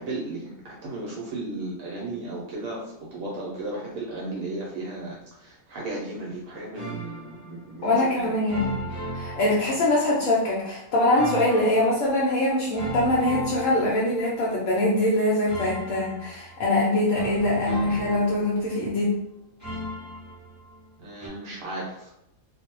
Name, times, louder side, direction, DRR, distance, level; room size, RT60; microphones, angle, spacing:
voice 1, 0.0-8.3 21.0-22.1, right 2 dB, 75° right, -4 dB, 1.0 m, -35 dB
sound 1, 6.7-7.6 8.5-10.2 11.1-12.2 12.7-14.5 15.5-16.6 17.1-19.0 19.6-20.9 21.2-21.3, right 1 dB, 15° right, 0.7 m, -36 dB
voice 2, 7.8-8.8 9.1-19.2, left 1 dB, 70° left, -5 dB, 0.9 m, -23 dB
2.5 x 2.0 x 2.9 m, 0.82 s
omnidirectional pair, 1.5 m